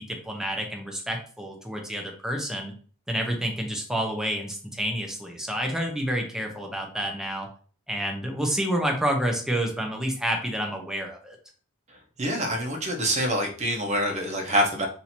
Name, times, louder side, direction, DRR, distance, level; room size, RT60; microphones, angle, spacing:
voice 1, 0.0-2.7 3.1-7.5 7.9-11.4, equal, 5° right, 1 dB, 0.7 m, -29 dB
voice 2, 12.2-14.9, equal, 35° right, 2 dB, 0.8 m, -26 dB
2.8 x 2.7 x 4.3 m, 0.42 s
head